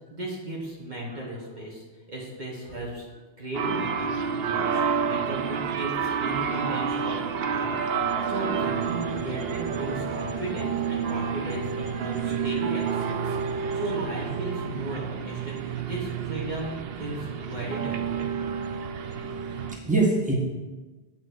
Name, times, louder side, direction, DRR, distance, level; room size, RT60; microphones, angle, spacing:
voice 1, 0.1-3.0 3.4-4.1 4.4-4.8 5.1-7.2 7.5-7.8 8.3-18.3, right 1 dB, 45° right, -4 dB, 1.6 m, -36 dB
voice 2, 1.1-1.5 2.6-2.7 5.8-5.9 19.4-20.3, right 3 dB, 5° right, -3 dB, 1.7 m, -27 dB
sound 1, 3.5-19.8, right 6 dB, 70° right, 0.8 m, -29 dB
8.4 x 4.3 x 6.3 m, 1.2 s
omnidirectional pair, 1.1 m